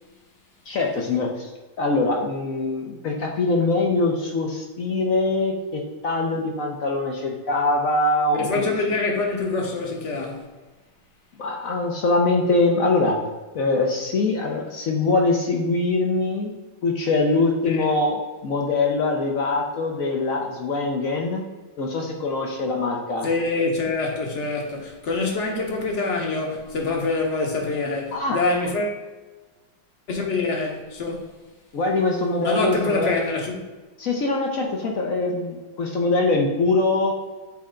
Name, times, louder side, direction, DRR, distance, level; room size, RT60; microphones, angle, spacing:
voice 1, 0.7-1.5 1.8-8.6 11.4-13.2 13.5-16.5 16.8-21.5 21.8-23.3 28.1-28.4 31.7-33.2 34.0-37.1, left 3 dB, 60° left, 1 dB, 0.9 m, -23 dB
voice 2, 8.3-10.5 17.6-17.9 23.2-29.0 30.1-31.3 32.4-33.6, left 3 dB, 40° left, 1 dB, 1.2 m, -25 dB
7.8 x 4.2 x 3.7 m, 1.2 s
omnidirectional pair, 2.2 m